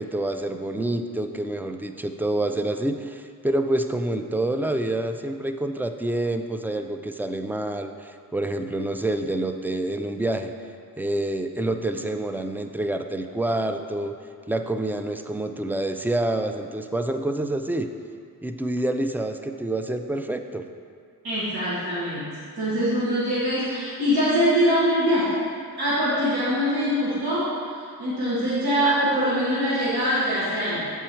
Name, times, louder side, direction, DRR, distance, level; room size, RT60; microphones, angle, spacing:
voice 1, 0.0-10.5 11.0-14.1 14.5-17.9 18.4-20.6, right 1 dB, 5° right, 6 dB, 0.4 m, -27 dB
voice 2, 21.2-25.3 25.8-27.5 28.0-30.9, equal, 70° right, -11 dB, 1.8 m, -23 dB
7.5 x 4.6 x 4.5 m, 2.3 s
cardioid pair, 45°, 38 cm